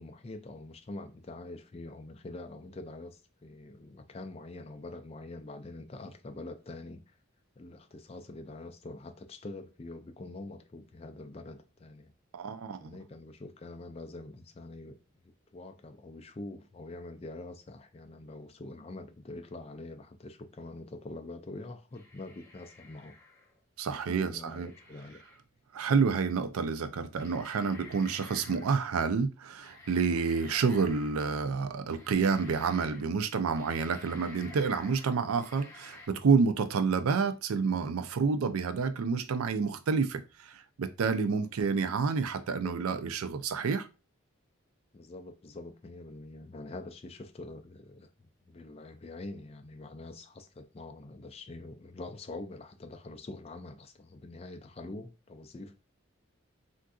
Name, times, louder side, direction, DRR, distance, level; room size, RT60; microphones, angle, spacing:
voice 1, 0.0-7.1 7.6-12.1 12.8-15.2 15.5-23.2 23.9-25.2 42.5-42.8 44.9-55.7, left 2 dB, 30° left, 0.4 m, -45 dB
voice 2, 12.3-13.0 23.8-24.7 25.7-43.9, right 5 dB, 90° right, 0.4 m, -29 dB
sound 1, 21.9-23.6 24.5-25.4 26.6-26.7 27.2-28.8 29.6-31.4 31.9-33.0 33.3-36.1, left 3 dB, 15° left, 0.8 m, -52 dB
3.6 x 2.6 x 2.3 m
head